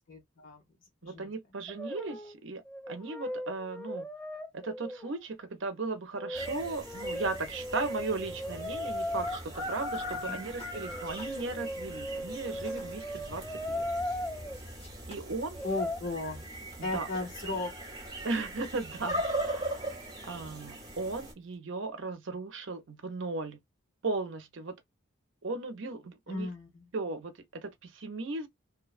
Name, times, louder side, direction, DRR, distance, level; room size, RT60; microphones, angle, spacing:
voice 1, 0.1-0.6 1.0-1.3 10.3-10.6 15.6-16.4 16.8-17.8 26.3-26.9, left 2 dB, 65° left, 1.0 m, -36 dB
voice 2, 1.0-4.1 4.5-13.9 15.1-15.6 16.8-17.1 18.2-19.7 20.2-23.6 24.0-24.8 25.4-26.5 26.9-28.5, right 3 dB, 60° right, 0.6 m, -36 dB
Brass instrument, 1.7-2.4 2.7-5.2 6.2-9.4 10.7-14.6 15.5-16.0, left 1 dB, 5° left, 0.3 m, -37 dB
sound 1, 6.3-21.3, right 1 dB, 20° right, 1.0 m, -40 dB
sound 2, 9.6-21.6, equal, 30° left, 0.9 m, -57 dB
2.7 x 2.2 x 2.4 m
head